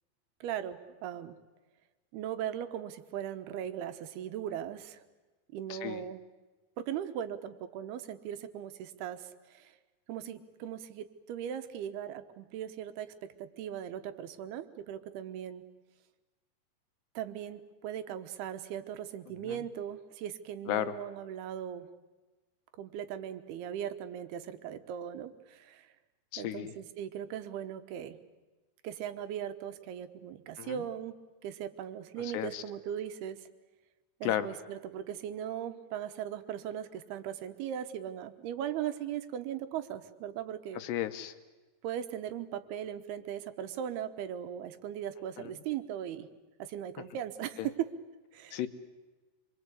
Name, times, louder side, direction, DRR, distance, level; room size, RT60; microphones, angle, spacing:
voice 1, 0.4-1.4 2.1-5.0 5.5-6.2 6.8-9.8 10.1-13.1 13.4-15.6 17.2-21.9 22.8-25.9 26.4-28.2 28.8-31.2 31.4-33.5 34.2-40.8 41.8-46.3 46.6-47.9 48.3-48.6, right 10 dB, 80° right, 10 dB, 2.9 m, -38 dB
voice 2, 5.7-6.0 19.3-19.6 20.7-20.9 26.3-26.7 30.6-30.8 32.2-32.6 34.2-34.5 40.7-41.3 45.4-45.5 47.6-47.7 48.5-48.7, left 12 dB, 90° left, 10 dB, 3.2 m, -34 dB
26.0 x 23.5 x 8.3 m, 1.2 s
omnidirectional pair, 4.7 m